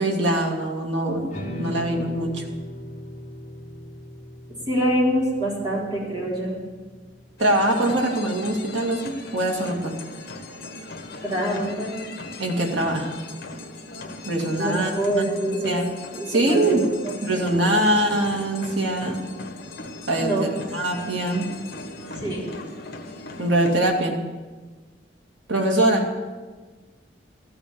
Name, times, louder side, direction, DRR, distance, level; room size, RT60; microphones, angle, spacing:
voice 1, 0.0-2.4 7.4-9.9 12.4-13.1 14.3-15.9 16.3-16.9 17.2-19.2 20.1-21.5 23.4-24.2 25.5-26.1, right 1 dB, 85° right, 1 dB, 2.3 m, -23 dB
sound 1, 1.3-7.6, equal, 45° left, 2.6 m, -39 dB
voice 2, 4.7-6.6 11.2-11.9 14.6-15.8 16.2-17.5 20.2-20.5 22.2-22.5, right 1 dB, 25° right, -6 dB, 4.1 m, -25 dB
sound 2, 7.4-23.8, left 2 dB, 60° left, 1.5 m, -39 dB
14.5 x 7.0 x 8.4 m, 1.3 s
head